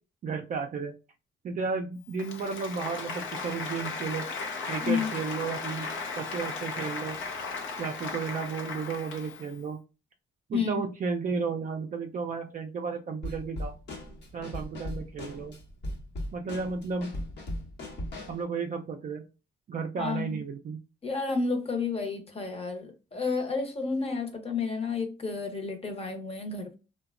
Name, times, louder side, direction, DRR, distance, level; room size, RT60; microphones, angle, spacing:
voice 1, 0.2-0.9 1.4-4.2 4.7-5.9 6.1-7.2 7.8-9.8 10.5-13.7 14.3-15.5 16.3-17.1 18.3-19.2 19.7-20.8, right 5 dB, 40° right, 0.4 m, -33 dB
Applause, 2.1-9.5, left 4 dB, 75° left, 0.6 m, -36 dB
voice 2, 10.5-10.8 20.0-20.4 21.0-26.7, left 4 dB, 30° left, 0.8 m, -31 dB
Drum kit / Snare drum, 13.2-18.4, left 1 dB, 60° left, 1.0 m, -38 dB
2.7 x 2.2 x 2.4 m
cardioid pair, 90°, 20 cm